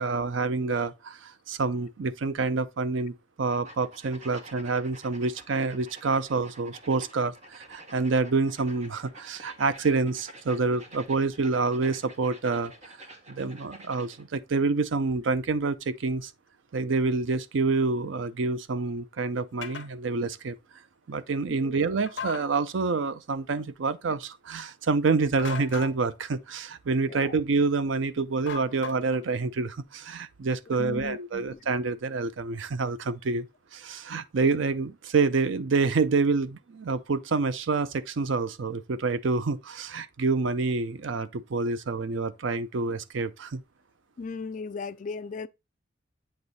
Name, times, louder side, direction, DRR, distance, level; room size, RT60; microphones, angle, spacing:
voice 1, 0.0-13.0 13.3-16.3 16.7-20.6 21.1-33.5 33.7-43.6, right 4 dB, 70° right, 0.5 m, -27 dB
sound 1, 3.5-14.2, right 2 dB, 35° right, 1.2 m, -49 dB
sound 2, 19.6-19.9 22.1-22.4 25.4-25.9 28.5-29.2, left 6 dB, 60° left, 1.0 m, -37 dB
voice 2, 30.8-31.6 44.2-45.5, left 4 dB, 40° left, 0.3 m, -37 dB
8.0 x 3.1 x 3.9 m
head